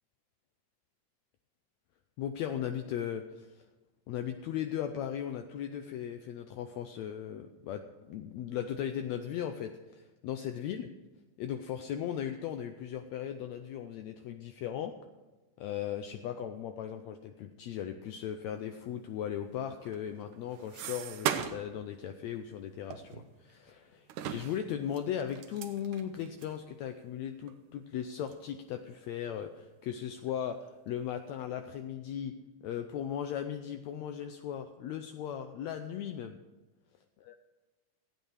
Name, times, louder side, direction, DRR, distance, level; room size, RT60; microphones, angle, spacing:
voice 1, 2.2-3.6 4.1-10.9 11.4-14.9 15.6-24.0 24.3-32.3 32.6-36.4 37.3-37.4, left 9 dB, 80° left, 7 dB, 1.7 m, -37 dB
sound 1, 19.8-21.8 22.1-22.3 22.9-23.7 24.1-26.6 27.1-27.2 27.5-27.6 28.3-28.5 28.9-29.6 30.0-30.7, right 9 dB, 80° right, 2.2 m, -39 dB
15.0 x 9.2 x 4.8 m, 1.2 s
omnidirectional pair, 3.5 m